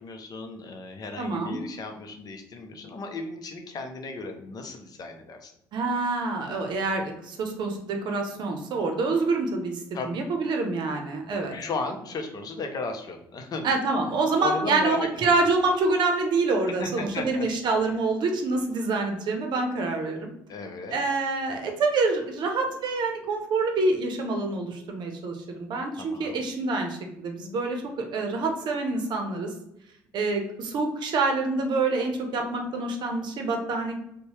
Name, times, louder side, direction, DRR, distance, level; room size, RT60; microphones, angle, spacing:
voice 1, 0.0-5.5 9.9-10.2 10.9-11.0 11.3-13.8 14.4-15.4 16.7-17.5 20.5-21.0 26.0-26.5, left 3 dB, 50° left, 5 dB, 0.6 m, -35 dB
voice 2, 1.2-1.6 5.7-9.7 10.0-11.5 13.6-20.3 20.9-29.5 30.1-33.9, right 3 dB, 60° right, 3 dB, 0.7 m, -26 dB
2.7 x 2.2 x 3.1 m, 0.80 s
hypercardioid pair, 60°, 9 cm